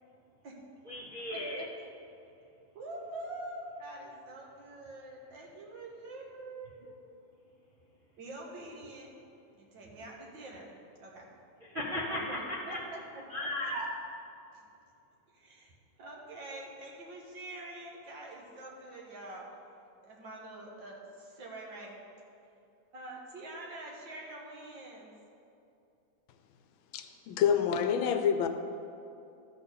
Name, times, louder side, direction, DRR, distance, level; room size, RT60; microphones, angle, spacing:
voice 1, 0.9-1.6 11.7-12.8 13.3-13.8, left 1 dB, 45° right, -5 dB, 0.7 m, -35 dB
voice 2, 2.7-7.0 8.2-9.1 9.5-10.7 11.0-11.3 12.1-12.4 12.7-13.5 14.5-14.6 15.3-15.7 16.0-19.5 20.0-22.0 22.9-25.1, right 2 dB, 70° right, -2 dB, 2.0 m, -45 dB
voice 3, 26.9-28.5, left 8 dB, 80° left, 8 dB, 1.4 m, -27 dB
12.0 x 4.2 x 6.7 m, 2.7 s
omnidirectional pair, 2.2 m